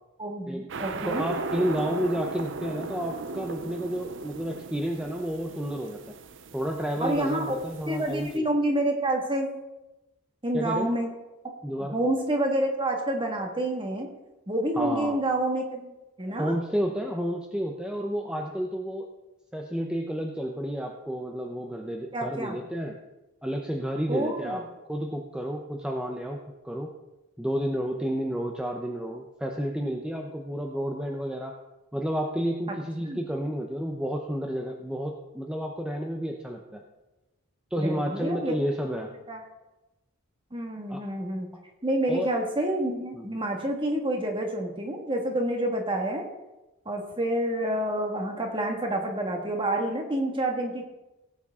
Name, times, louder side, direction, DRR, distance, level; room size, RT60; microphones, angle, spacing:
voice 1, 0.2-1.3 7.0-7.6 7.9-9.5 10.4-11.1 11.9-14.1 14.5-16.5 22.1-22.6 24.1-24.6 33.0-33.2 37.8-38.5 39.3-39.4 40.5-41.5 41.8-46.2 46.8-50.8, right 1 dB, 25° right, 2 dB, 1.7 m, -28 dB
sound 1, 0.7-8.4, right 4 dB, 55° right, 0.6 m, -37 dB
voice 2, 1.1-6.1 6.5-8.5 10.5-10.9 11.6-12.0 14.8-15.2 16.3-19.1 19.5-23.0 23.4-26.4 26.6-26.9 27.4-31.6 31.9-36.8 37.7-39.1 40.9-41.0 41.5-41.6 42.1-42.3 43.1-43.3, equal, 5° right, 1 dB, 0.7 m, -31 dB
17.5 x 8.6 x 3.7 m, 1.0 s
head